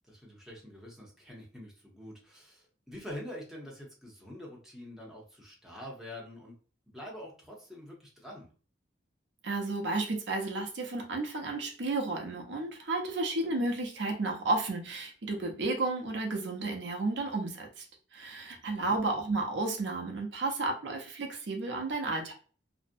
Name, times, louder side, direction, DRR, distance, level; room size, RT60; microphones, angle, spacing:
voice 1, 0.1-6.5 6.9-8.5 18.5-19.0, left 1 dB, ahead, -3 dB, 0.6 m, -46 dB
voice 2, 9.4-17.9 18.1-22.3, right 2 dB, 65° right, 2 dB, 0.5 m, -32 dB
2.5 x 2.0 x 2.5 m, 0.39 s
head